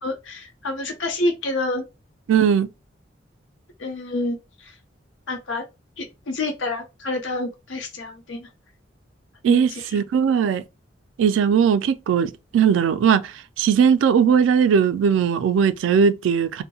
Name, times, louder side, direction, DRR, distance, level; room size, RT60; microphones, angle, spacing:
voice 1, 0.0-1.8 3.8-4.7 5.3-5.6 6.0-8.5 9.4-10.0, left 2 dB, 85° left, 0.7 m, -28 dB
voice 2, 2.3-2.7 9.4-10.6 11.2-13.2 13.6-16.6, right 7 dB, 85° right, 0.3 m, -19 dB
2.6 x 2.1 x 2.7 m
head